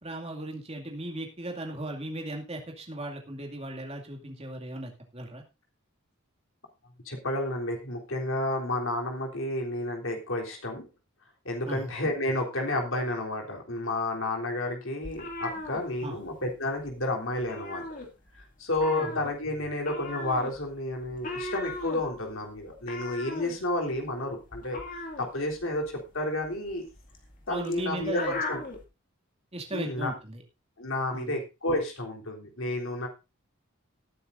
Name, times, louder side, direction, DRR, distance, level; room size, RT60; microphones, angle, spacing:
voice 1, 0.0-5.4 11.6-11.9 16.0-16.2 18.9-19.2 27.5-28.4 29.5-30.4 31.1-31.4, right 1 dB, 25° right, 1 dB, 2.3 m, -37 dB
voice 2, 7.1-10.9 11.5-17.9 18.6-24.8 25.2-26.8 27.5-28.6 29.7-30.1 30.8-33.1, left 1 dB, 65° left, 1 dB, 3.4 m, -31 dB
sound 1, 15.0-16.5 16.8-17.0 17.3-18.4 18.7-28.8, left 2 dB, 40° left, 2.4 m, -38 dB
18.5 x 9.7 x 2.6 m, 0.27 s
head